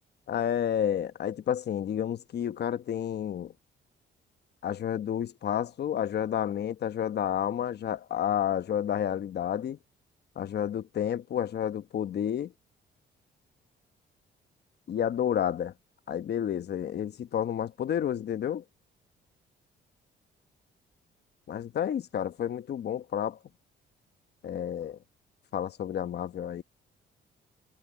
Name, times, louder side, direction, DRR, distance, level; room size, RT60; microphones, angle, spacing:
voice 1, 0.3-3.5 4.6-9.8 10.4-12.5 14.9-15.7 16.1-18.6 21.5-23.4 24.4-25.0 25.5-26.6, left 9 dB, 55° left, 1.0 m, -30 dB
cardioid pair, 90°, 20 cm